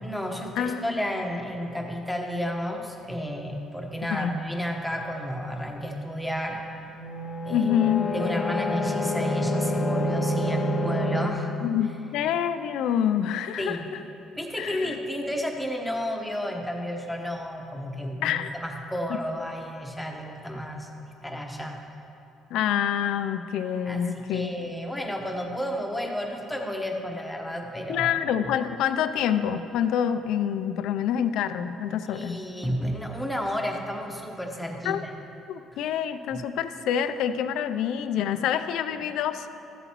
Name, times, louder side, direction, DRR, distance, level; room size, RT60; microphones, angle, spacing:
voice 1, 0.0-6.6 7.4-7.8 8.1-11.5 13.6-13.9 14.4-20.9 21.2-21.8 23.9-28.1 32.1-35.1 36.3-36.4, equal, 5° left, 1 dB, 1.1 m, -32 dB
voice 2, 0.6-0.9 4.1-4.4 7.5-8.1 11.6-13.8 14.6-14.9 18.2-18.5 22.5-24.5 27.9-32.4 34.9-35.0 35.5-39.5, left 9 dB, 80° left, 10 dB, 0.4 m, -26 dB
sound 1, 6.9-11.3, left 1 dB, 35° left, 0.7 m, -27 dB
14.0 x 8.0 x 3.0 m, 2.9 s
cardioid pair, 105°, 0 cm